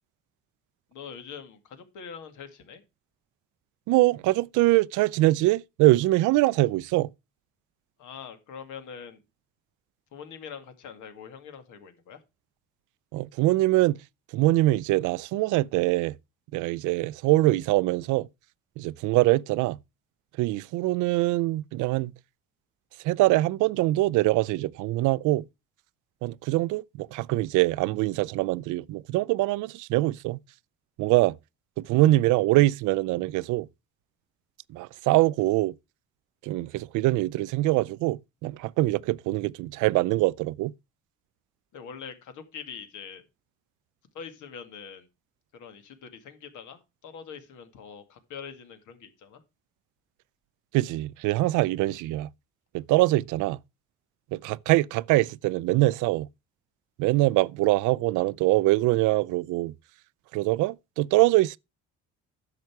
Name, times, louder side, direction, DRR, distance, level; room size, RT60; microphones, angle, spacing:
voice 1, 0.9-2.8 8.0-9.2 10.1-12.2 41.7-43.2 44.1-45.1 45.5-49.4, left 7 dB, 80° left, 2.1 m, -43 dB
voice 2, 3.9-7.1 13.1-14.0 14.3-16.2 16.5-18.3 18.8-19.8 20.4-22.1 23.0-25.4 26.2-30.4 31.0-31.3 31.9-33.7 34.7-35.7 36.4-40.7 50.7-52.3 52.7-53.6 54.3-56.3 57.0-59.7 60.3-61.6, right 18 dB, 90° right, 0.5 m, -23 dB
10.5 x 6.7 x 4.6 m
cardioid pair, 110°, 30 cm